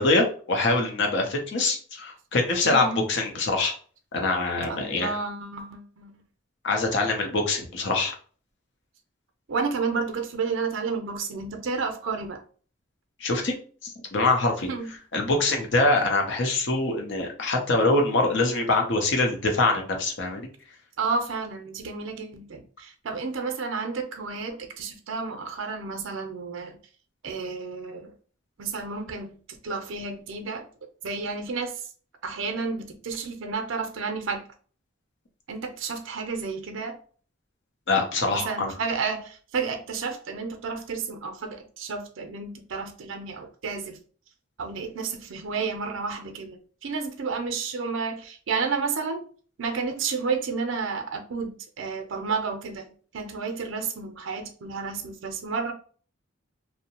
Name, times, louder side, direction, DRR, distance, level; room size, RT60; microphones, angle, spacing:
voice 1, 0.0-3.7 4.1-5.1 6.6-8.1 13.2-13.5 13.8-14.7 15.1-20.5 37.9-38.7, left 2 dB, 60° left, 0.6 m, -24 dB
voice 2, 2.6-3.0 4.7-6.2 9.5-12.4 14.7-14.9 21.0-26.8 27.2-28.1 28.6-30.7 31.0-31.8 32.2-34.5 35.5-37.0 38.3-44.0 44.6-49.2 49.6-52.9 53.1-55.7, right 4 dB, 70° right, 0.5 m, -31 dB
2.7 x 2.1 x 2.8 m
head